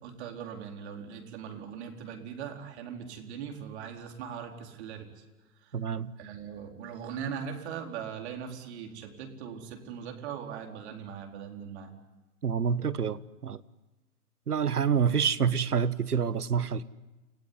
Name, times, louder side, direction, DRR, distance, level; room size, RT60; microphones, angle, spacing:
voice 1, 0.0-5.2 5.5-5.8 6.2-11.9, right 7 dB, 45° right, 4.4 m, -40 dB
voice 2, 5.7-6.1 12.4-13.6 14.5-16.8, right 7 dB, 85° right, 1.3 m, -27 dB
29.5 x 18.0 x 9.8 m
hypercardioid pair, 125°, 45 cm